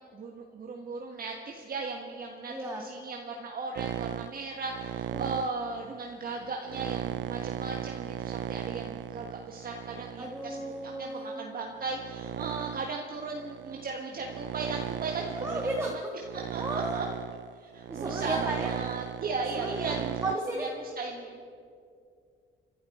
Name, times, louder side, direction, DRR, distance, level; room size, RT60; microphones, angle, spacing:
voice 1, 0.1-16.0 16.3-17.0 17.5-20.2 20.6-21.4, right 4 dB, 45° right, 1 dB, 1.4 m, -37 dB
voice 2, 2.5-2.9 5.1-5.2 10.2-11.4 15.4-16.0 16.5-17.1 17.9-18.7 19.5-20.0 20.2-20.7, right 1 dB, 15° right, -2 dB, 2.0 m, -34 dB
sound 1, 3.8-11.1 11.7-20.4, right 12 dB, 70° right, 0.4 m, -37 dB
29.0 x 11.5 x 4.3 m, 2.4 s
cardioid pair, 90°, 20 cm